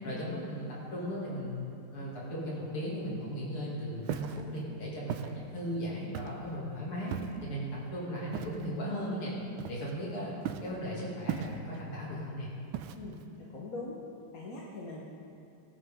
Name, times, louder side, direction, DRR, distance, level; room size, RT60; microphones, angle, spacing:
voice 1, 0.0-1.6 1.9-7.2 7.4-9.3 9.7-10.3 10.6-12.5, equal, 75° left, -6 dB, 3.6 m, -37 dB
voice 2, 0.9-1.3 12.9-14.0 14.3-15.0, left 3 dB, 45° left, -5 dB, 1.6 m, -43 dB
Walk footsteps, 4.0-4.4 5.1-5.3 6.1-6.5 7.1-7.5 8.3-8.7 9.6-10.0 10.4-10.8 11.3-11.8 12.7-13.2, right 10 dB, 75° right, 1.3 m, -37 dB
18.5 x 11.5 x 3.7 m, 2.6 s
omnidirectional pair, 2.4 m